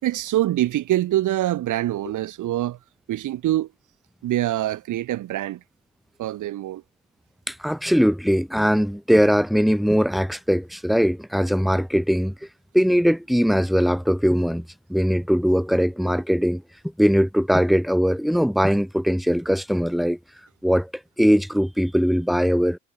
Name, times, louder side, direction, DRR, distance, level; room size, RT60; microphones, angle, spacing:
voice 1, 0.0-2.8 3.1-3.7 4.2-5.6 6.2-6.8, right 14 dB, 80° right, 4.8 m, -24 dB
voice 2, 7.5-12.3 12.7-14.6 14.9-16.6 17.0-20.2 20.6-20.9 21.2-22.8, equal, ahead, 6.6 m, -20 dB
cardioid pair, 90°, 30 cm